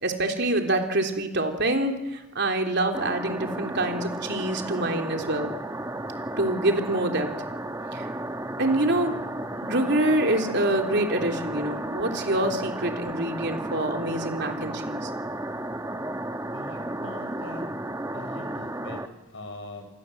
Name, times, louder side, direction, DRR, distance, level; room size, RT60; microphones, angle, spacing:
voice 1, 0.0-5.5 6.4-7.3 7.9-8.1 8.6-9.2 9.6-15.1, right 1 dB, 55° right, 3 dB, 3.5 m, -26 dB
sound 1, 2.9-19.1, right 1 dB, 15° right, 1.3 m, -33 dB
voice 2, 16.5-17.6 18.1-19.9, left 1 dB, 70° left, 6 dB, 6.2 m, -42 dB
29.0 x 24.5 x 8.0 m, 0.97 s
head